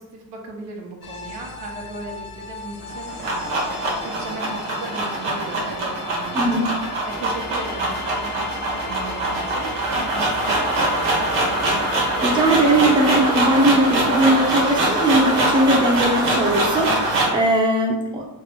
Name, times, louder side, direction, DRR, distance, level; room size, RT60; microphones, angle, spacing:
voice 1, 0.0-3.7 4.0-11.3, right 2 dB, 65° right, 0 dB, 1.1 m, -37 dB
sound 1, 1.0-17.2, left 4 dB, 25° left, 0.4 m, -37 dB
sound 2, 2.8-17.4, right 1 dB, 90° right, 1.3 m, -23 dB
voice 2, 6.3-6.7 12.2-18.3, right 1 dB, 10° right, -1 dB, 0.7 m, -19 dB
3.2 x 2.8 x 3.6 m, 0.87 s
cardioid pair, 95°, 46 cm